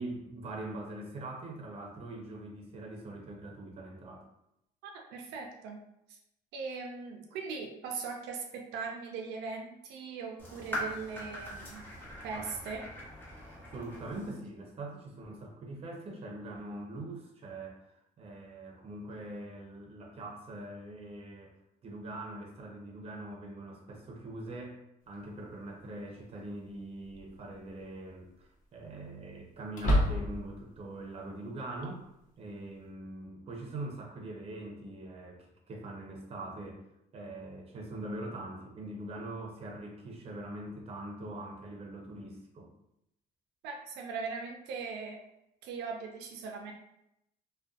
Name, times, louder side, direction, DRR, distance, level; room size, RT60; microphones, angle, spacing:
voice 1, 0.0-4.3 12.3-12.5 13.7-17.9 18.2-21.5 21.8-24.8 25.1-32.0 32.4-36.8 37.1-42.7, right 1 dB, 35° right, 0 dB, 0.6 m, -42 dB
voice 2, 4.8-5.8 6.1-6.2 6.5-11.9 12.2-12.8 43.6-45.2 45.6-46.7, right 5 dB, 90° right, 2 dB, 0.4 m, -40 dB
sound 1, 10.4-14.4, left 1 dB, 10° left, 0.9 m, -41 dB
sound 2, 25.1-25.2 27.0-27.5 27.8-27.9 29.7-30.6, equal, 50° left, 0.8 m, -28 dB
2.5 x 2.2 x 2.3 m, 0.82 s
cardioid pair, 110°, 17 cm